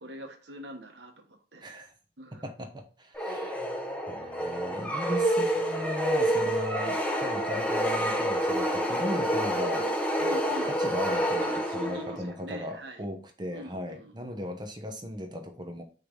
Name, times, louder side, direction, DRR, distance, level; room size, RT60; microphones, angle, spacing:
voice 1, 0.0-1.7 2.2-2.4 10.2-10.8 11.4-13.1 13.5-14.1, right 1 dB, 80° right, 4 dB, 1.2 m, -43 dB
voice 2, 1.6-1.9 2.4-3.7 4.1-10.1 10.6-15.8, left 1 dB, 25° right, 5 dB, 0.9 m, -37 dB
sound 1, 3.2-12.3, equal, 5° left, 0.7 m, -28 dB
5.8 x 3.3 x 5.1 m, 0.39 s
head